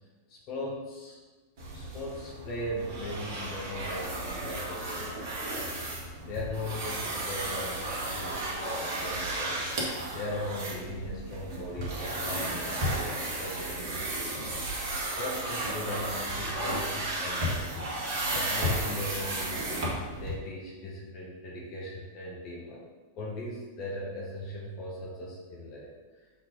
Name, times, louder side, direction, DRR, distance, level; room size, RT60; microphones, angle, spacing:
voice 1, 0.3-1.2 1.7-5.6 6.3-9.7 10.1-13.9 14.2-14.5 15.2-17.9 18.3-19.6 20.1-22.8 23.2-25.9, left 1 dB, 40° left, -4 dB, 1.4 m, -39 dB
sound 1, 1.6-20.3, right 1 dB, 45° right, 1.8 m, -33 dB
7.1 x 4.1 x 3.9 m, 1.3 s
figure-of-eight pair, 90°, 0 cm